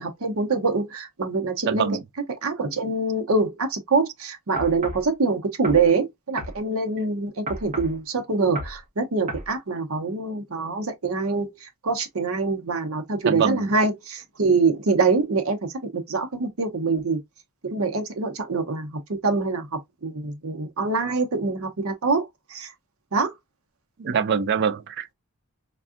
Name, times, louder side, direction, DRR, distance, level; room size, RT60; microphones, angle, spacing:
voice 1, 0.0-1.9 2.4-15.6 15.9-17.2 17.6-22.7 23.1-23.3, right 4 dB, 65° right, 0.7 m, -25 dB
voice 2, 1.7-2.0 13.2-13.7 24.0-25.1, right 7 dB, 50° right, 0.3 m, -24 dB
sound 1, 4.6-5.1 5.6-5.9 6.4-6.6 7.5-8.0 8.6-8.8 9.3-9.5, right 1 dB, 35° right, 0.8 m, -33 dB
3.5 x 2.3 x 2.4 m
head